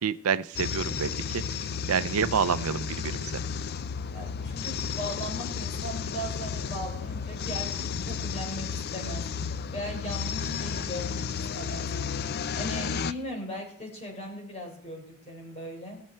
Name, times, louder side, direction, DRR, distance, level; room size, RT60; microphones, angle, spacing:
voice 1, 0.0-1.4 1.9-3.3, right 7 dB, 75° right, 14 dB, 0.5 m, -28 dB
sound 1, 0.5-13.1, left 6 dB, 45° left, 0.4 m, -33 dB
voice 2, 4.1-9.3 9.7-11.9 12.5-16.0, equal, 30° left, 1 dB, 3.7 m, -38 dB
18.5 x 7.7 x 4.4 m, 0.65 s
head